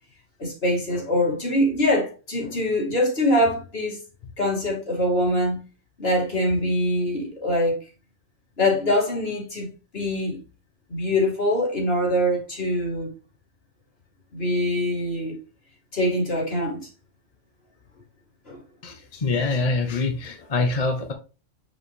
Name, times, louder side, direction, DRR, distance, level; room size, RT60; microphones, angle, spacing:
voice 1, 0.4-4.0 4.4-5.6 6.0-7.8 8.6-10.4 10.9-13.1 14.3-15.4 15.9-16.9 18.5-18.6, left 1 dB, 50° left, 2.5 m, -23 dB
voice 2, 18.8-21.1, left 3 dB, 35° left, 0.8 m, -25 dB
6.4 x 4.9 x 3.2 m
omnidirectional pair, 1.3 m